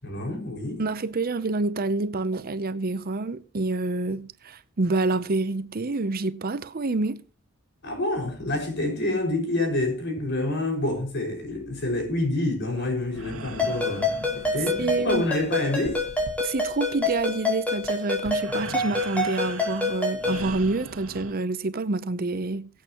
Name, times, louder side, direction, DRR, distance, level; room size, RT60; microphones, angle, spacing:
voice 1, 0.0-0.8 7.8-14.1 14.3-16.0, left 2 dB, 55° left, 5.8 m, -27 dB
voice 2, 0.8-7.2 14.8-15.2 16.4-22.7, right 3 dB, 45° right, 0.7 m, -27 dB
sound 1, 12.8-21.3, right 3 dB, 90° right, 1.7 m, -40 dB
Ringtone, 13.6-20.5, left 2 dB, 5° left, 4.8 m, -27 dB
23.0 x 8.5 x 3.0 m
head